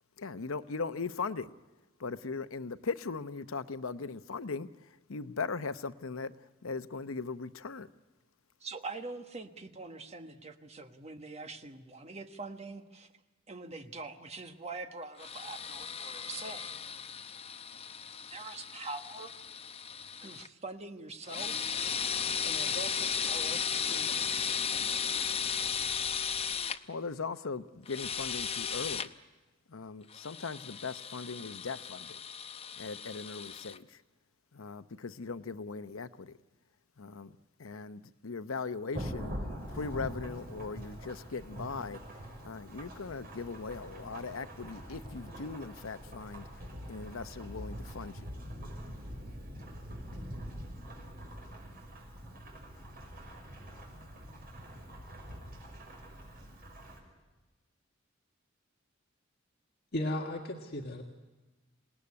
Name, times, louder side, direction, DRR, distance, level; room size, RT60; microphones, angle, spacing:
voice 1, 0.2-1.5 2.0-7.9 26.9-29.1 29.7-32.2 32.7-34.0 34.5-36.4 37.0-37.3 37.6-39.3 39.7-48.3, left 4 dB, 85° left, 12 dB, 0.8 m, -39 dB
voice 2, 8.6-13.1 13.5-16.7 18.3-19.4 20.1-21.7 22.4-25.1, right 3 dB, 35° right, 6 dB, 1.4 m, -44 dB
sound 1, 15.2-20.5 21.2-26.8 27.9-29.1 30.1-33.8, left 7 dB, 30° left, 0.8 m, -35 dB
Thunderstorm / Rain, 38.9-57.0, equal, 50° right, 5.8 m, -44 dB
voice 3, 59.9-61.0, left 1 dB, 50° left, 1 dB, 1.6 m, -35 dB
27.0 x 18.5 x 9.7 m, 1.2 s
head